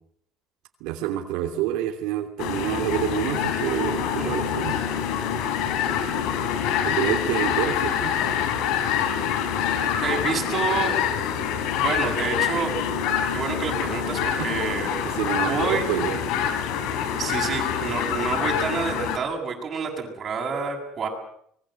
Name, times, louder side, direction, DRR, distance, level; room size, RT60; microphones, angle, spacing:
voice 1, 0.8-4.8 6.8-8.1 14.4-14.5 15.0-16.2, right 12 dB, 75° right, 3 dB, 3.1 m, -27 dB
sound 1, 2.4-19.2, left 8 dB, 70° left, 3.7 m, -26 dB
voice 2, 9.8-11.0 11.8-12.7 13.3-14.9 15.4-15.9 17.2-21.1, right 5 dB, 30° right, 1 dB, 7.4 m, -28 dB
26.0 x 21.5 x 7.9 m, 0.69 s
cardioid pair, 150°, 0 cm